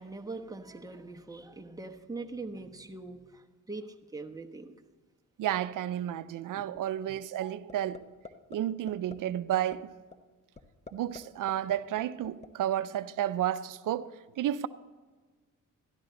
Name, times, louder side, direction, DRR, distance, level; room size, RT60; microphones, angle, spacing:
voice 1, 0.0-4.7 6.6-6.7, right 3 dB, 10° right, 1.0 m, -42 dB
voice 2, 5.4-8.0 8.5-9.9 10.9-14.0 14.4-14.7, right 11 dB, 70° right, 0.6 m, -31 dB
sound 1, 7.7-8.0 8.2-8.6 8.9-9.1 9.5-9.8 10.1-10.2 10.6-11.2 11.5-12.5, left 3 dB, 20° left, 0.9 m, -45 dB
12.5 x 12.0 x 3.9 m
cardioid pair, 95°, 33 cm